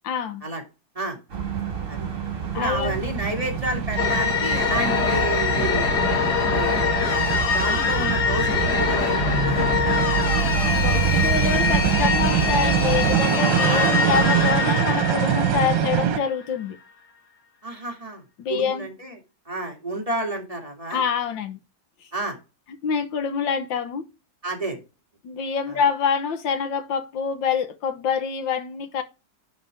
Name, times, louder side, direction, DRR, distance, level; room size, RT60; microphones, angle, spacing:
voice 1, 0.0-0.5 2.5-3.0 10.6-16.8 18.4-18.9 20.9-21.6 22.8-24.0 25.2-29.0, left 6 dB, 85° left, 1.8 m, -26 dB
sound 1, 1.3-13.2, right 6 dB, 45° right, 2.6 m, -28 dB
sound 2, 1.3-16.2, right 10 dB, 80° right, 1.6 m, -26 dB
voice 2, 2.5-5.9 6.5-10.0 13.7-13.9 17.6-18.2 18.5-19.2 19.5-21.0 22.1-22.4 24.4-24.8 25.7-25.8, right 1 dB, 20° right, 2.0 m, -30 dB
sound 3, 4.0-16.5, left 6 dB, 65° left, 1.9 m, -24 dB
10.5 x 4.2 x 5.0 m
omnidirectional pair, 2.0 m